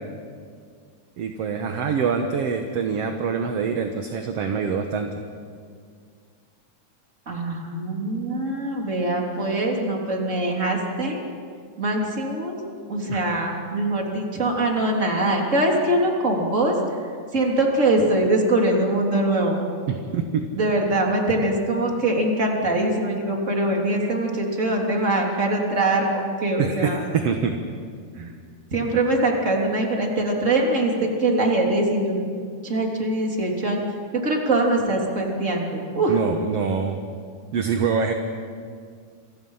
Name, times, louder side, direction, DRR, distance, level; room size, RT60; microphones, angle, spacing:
voice 1, 1.2-5.1 13.1-13.2 19.9-20.4 26.6-27.6 28.2-28.3 36.1-37.0 37.5-38.1, right 6 dB, 60° right, 5 dB, 2.1 m, -25 dB
voice 2, 7.3-11.2 11.8-12.6 12.9-16.8 17.3-19.6 20.5-27.0 28.7-32.3 32.6-33.8 34.1-36.2, right 2 dB, 25° right, 0 dB, 3.5 m, -23 dB
29.0 x 24.5 x 5.7 m, 2.1 s
omnidirectional pair, 3.5 m